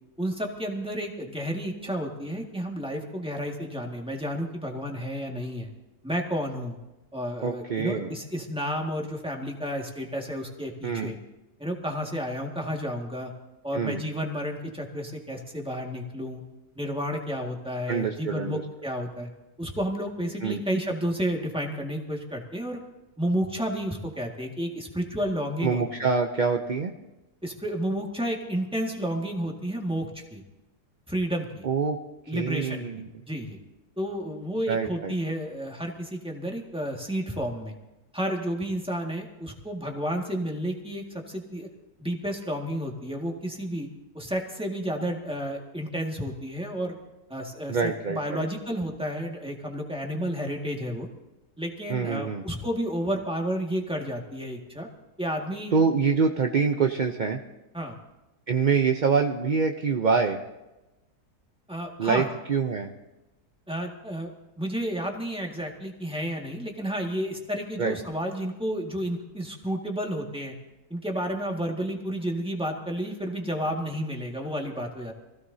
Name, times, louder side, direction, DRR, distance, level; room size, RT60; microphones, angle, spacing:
voice 1, 0.2-5.7 6.0-6.8 7.1-11.2 11.6-13.3 13.6-16.4 16.8-19.3 19.6-22.8 23.2-25.8 27.4-30.4 31.1-31.7 32.3-33.0 33.3-33.6 34.0-37.7 38.1-41.7 42.0-43.9 44.1-47.0 47.3-51.1 51.6-54.9 55.2-55.7 57.7-58.0 61.7-62.3 63.7-64.3 64.6-70.5 70.9-75.1, equal, 5° right, 0 dB, 1.7 m, -31 dB
voice 2, 7.4-8.1 10.8-11.1 13.7-14.0 17.9-18.6 20.4-20.6 25.6-26.9 31.6-32.0 32.3-33.1 34.7-35.1 47.7-48.4 51.9-52.4 55.7-57.4 58.5-60.4 62.0-62.9 67.8-67.9, right 5 dB, 50° right, 4 dB, 0.5 m, -25 dB
24.5 x 16.0 x 2.7 m, 1.0 s
omnidirectional pair, 1.7 m